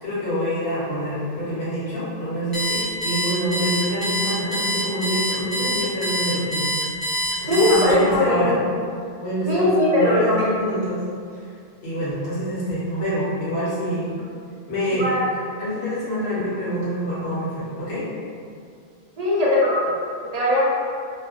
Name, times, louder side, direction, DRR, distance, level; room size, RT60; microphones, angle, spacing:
voice 1, 0.0-6.7 7.4-8.7 9.2-11.0 11.8-14.1 14.7-15.1 15.6-18.0, equal, 65° left, -9 dB, 1.1 m, -26 dB
Alarm, 2.5-8.2, left 1 dB, 25° left, 0.5 m, -25 dB
voice 2, 7.5-8.4 9.5-10.5 15.0-15.2 19.2-19.8 20.3-20.7, left 1 dB, 45° right, -7 dB, 0.5 m, -19 dB
2.7 x 2.1 x 2.4 m, 2.3 s
omnidirectional pair, 1.2 m